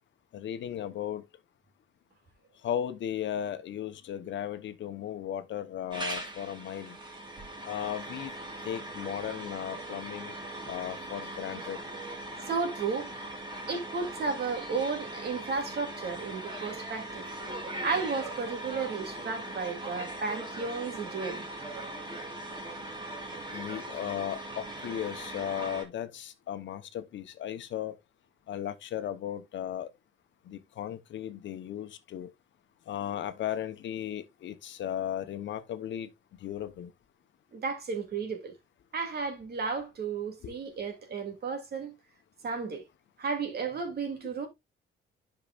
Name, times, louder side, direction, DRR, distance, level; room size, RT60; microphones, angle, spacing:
voice 1, 0.3-1.2 2.6-7.0 7.6-8.3 8.6-10.3 10.7-11.8 23.5-27.9 28.5-29.9 30.5-32.3 32.9-36.1 36.4-36.9 40.4-40.5, left 10 dB, 70° left, 1.1 m, -36 dB
sound 1, 5.9-25.8, right 1 dB, 25° right, 3.0 m, -40 dB
voice 2, 12.4-13.1 13.7-17.2 17.8-21.5 37.5-38.5 38.9-41.9 42.4-42.8 43.2-44.5, right 4 dB, 55° right, 2.9 m, -33 dB
10.5 x 5.8 x 2.5 m
cardioid pair, 90°, 20 cm